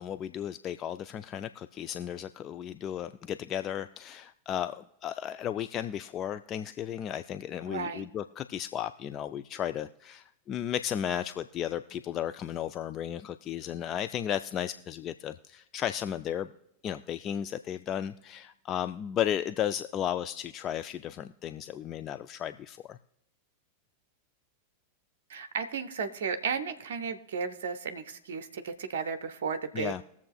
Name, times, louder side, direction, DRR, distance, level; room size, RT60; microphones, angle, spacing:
voice 1, 0.0-16.5 16.8-23.0 29.7-30.0, left 10 dB, 30° left, 11 dB, 0.3 m, -34 dB
voice 2, 7.7-8.1 25.3-30.0, right 6 dB, 60° right, 9 dB, 0.6 m, -34 dB
21.5 x 7.1 x 2.3 m, 0.81 s
figure-of-eight pair, 90°, 0 cm